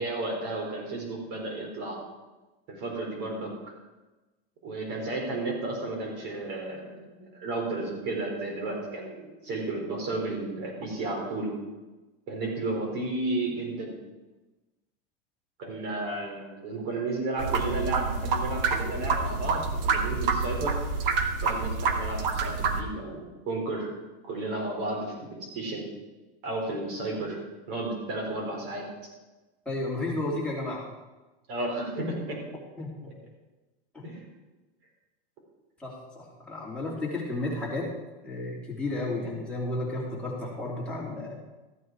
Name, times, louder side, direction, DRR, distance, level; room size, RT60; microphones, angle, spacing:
voice 1, 0.0-2.0 2.7-3.5 4.6-11.5 12.3-13.9 15.6-20.8 21.4-23.9 24.3-25.9 26.4-27.4 27.7-29.1 31.5-32.4 34.0-34.2, right 2 dB, 45° right, -1 dB, 4.1 m, -33 dB
sound 1, 17.4-22.8, right 4 dB, 65° right, 1.3 m, -28 dB
voice 2, 29.6-30.8 32.8-33.1 33.9-34.0 35.8-37.9 38.2-41.3, left 2 dB, 5° left, -6 dB, 2.7 m, -32 dB
14.0 x 9.0 x 4.7 m, 1.1 s
supercardioid pair, 165°, 30 cm